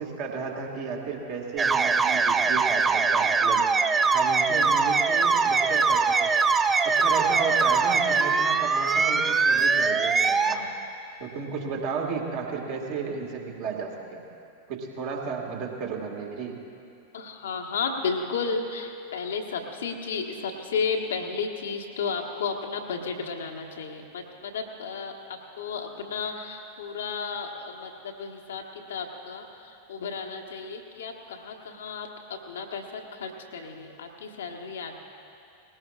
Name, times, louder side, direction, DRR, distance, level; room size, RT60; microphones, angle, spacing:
voice 1, 0.0-3.6 4.1-6.3 6.8-10.7 11.2-14.2 14.7-16.6, right 5 dB, 50° right, 0 dB, 1.9 m, -33 dB
sound 1, 1.6-10.6, right 5 dB, 20° right, 0.5 m, -22 dB
voice 2, 17.1-32.1 32.5-35.0, left 5 dB, 65° left, 2 dB, 1.3 m, -33 dB
20.0 x 18.0 x 2.4 m, 2.6 s
figure-of-eight pair, 90°, 0 cm